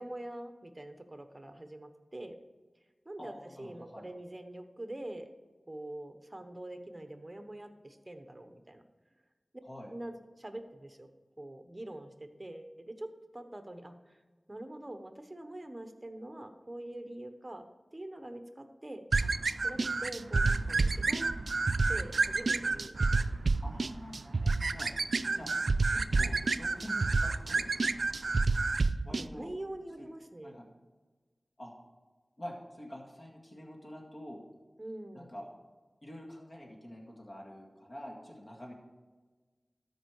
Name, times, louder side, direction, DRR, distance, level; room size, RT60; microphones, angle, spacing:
voice 1, 0.0-2.4 3.0-3.3 3.6-5.3 5.7-8.8 9.9-11.1 11.4-14.2 14.5-17.6 17.9-19.0 19.6-21.3 21.9-23.3 25.3-25.6 28.5-28.8 29.1-30.6 34.8-35.3, right 1 dB, 25° right, 7 dB, 1.0 m, -44 dB
voice 2, 3.2-4.1 9.6-9.9 23.6-24.9 25.3-25.5 25.9-28.0 29.0-29.5 30.0-30.1 30.4-30.7 31.6-31.7 32.4-34.5 35.1-35.5 36.0-38.7, equal, 45° left, -2 dB, 1.9 m, -46 dB
sound 1, 19.1-29.3, right 3 dB, 80° right, 0.3 m, -29 dB
13.0 x 5.3 x 4.7 m, 1.3 s
wide cardioid pair, 60°, 0 cm